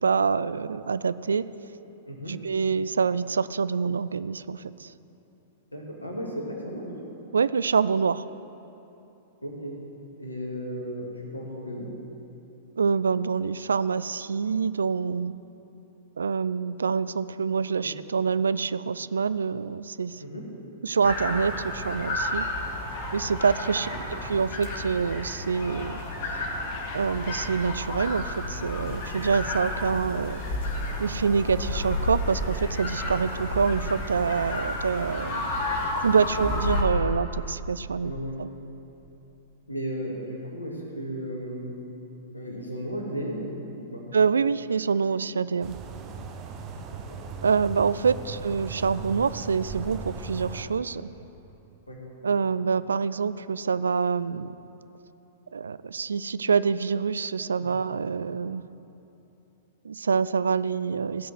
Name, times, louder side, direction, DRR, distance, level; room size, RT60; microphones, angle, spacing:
voice 1, 0.0-1.4 2.3-4.9 7.3-8.3 12.8-15.3 16.2-20.2 20.8-22.5 23.1-23.9 24.3-26.0 26.9-30.4 31.0-35.5 36.0-38.1 38.4-38.5 44.1-45.8 47.4-51.1 52.2-54.5 55.5-58.6 59.8-61.3, right 5 dB, 70° right, 16 dB, 0.3 m, -26 dB
voice 2, 2.1-2.4 5.7-6.9 9.4-9.8 10.2-11.9 17.8-18.0 20.2-20.5 23.9-24.0 28.7-29.0 36.4-36.5 38.0-38.4 39.7-41.8 42.3-44.1 46.9-47.2 51.9-52.0 57.6-57.8, equal, 85° left, -1 dB, 2.2 m, -35 dB
sound 1, 21.0-36.8, left 2 dB, 45° left, 2.3 m, -31 dB
sound 2, 45.6-50.6, right 5 dB, 30° right, 1.1 m, -38 dB
16.0 x 6.3 x 7.9 m, 2.9 s
figure-of-eight pair, 100°, 0 cm